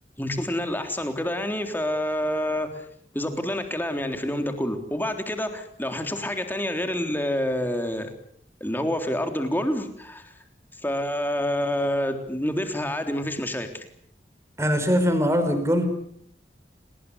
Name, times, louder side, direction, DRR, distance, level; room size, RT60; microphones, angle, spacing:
voice 1, 0.2-2.8 3.1-8.1 8.6-10.3 10.8-13.9, left 1 dB, 10° left, 6 dB, 3.5 m, -28 dB
voice 2, 14.6-15.8, equal, 15° right, 8 dB, 5.1 m, -21 dB
30.0 x 20.0 x 8.2 m, 0.67 s
head